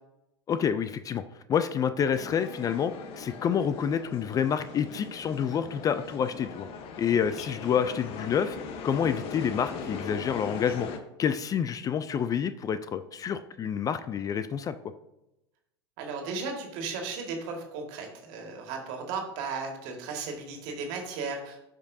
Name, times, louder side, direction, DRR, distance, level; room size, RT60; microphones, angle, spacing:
voice 1, 0.5-6.7 7.0-8.6 8.8-10.9 11.2-14.7, left 8 dB, 25° left, 12 dB, 0.4 m, -28 dB
sound 1, 2.1-11.0, left 5 dB, 45° left, 1.0 m, -40 dB
voice 2, 16.0-21.6, right 4 dB, 55° right, 2 dB, 1.9 m, -35 dB
12.5 x 5.1 x 2.7 m, 0.90 s
hypercardioid pair, 90°, 14 cm